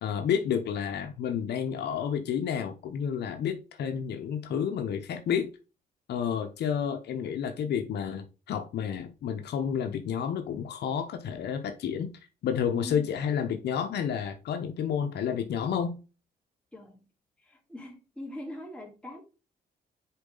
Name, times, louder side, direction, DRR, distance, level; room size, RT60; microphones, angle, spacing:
voice 1, 0.0-5.5 6.1-12.1 12.4-16.0, left 8 dB, 80° left, 0.9 m, -30 dB
voice 2, 12.7-13.3 16.7-17.1 17.4-19.2, left 1 dB, 5° left, 3.3 m, -42 dB
6.9 x 4.5 x 3.9 m
cardioid pair, 100°, 17 cm